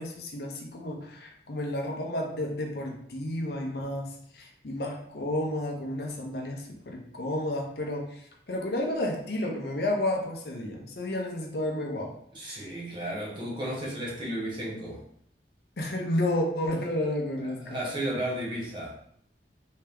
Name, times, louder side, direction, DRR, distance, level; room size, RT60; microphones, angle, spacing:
voice 1, 0.0-12.1 12.4-12.7 15.8-17.8, left 1 dB, 60° left, 1 dB, 0.6 m, -31 dB
voice 2, 12.3-15.0 17.4-18.9, right 1 dB, 25° right, -4 dB, 0.9 m, -34 dB
3.3 x 2.8 x 3.4 m, 0.68 s
head